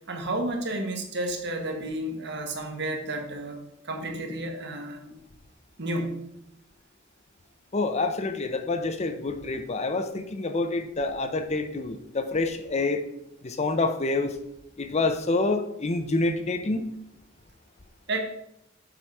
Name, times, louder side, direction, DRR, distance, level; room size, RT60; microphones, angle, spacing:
voice 1, 0.1-5.1 5.8-6.2 18.1-18.2, right 1 dB, 60° right, 3 dB, 1.5 m, -31 dB
voice 2, 7.7-13.0 13.4-14.4 14.8-16.8, left 3 dB, 35° left, 8 dB, 0.7 m, -27 dB
7.6 x 5.7 x 4.7 m, 0.81 s
head